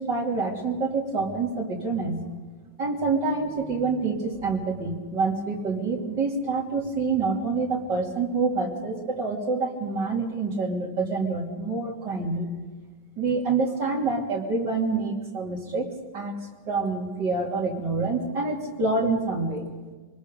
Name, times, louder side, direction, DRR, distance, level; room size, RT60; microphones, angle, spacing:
voice 1, 0.0-2.2 2.8-12.5 13.2-16.4 16.7-19.7, right 3 dB, 70° right, -1 dB, 3.5 m, -27 dB
26.0 x 20.5 x 5.3 m, 1.3 s
omnidirectional pair, 1.9 m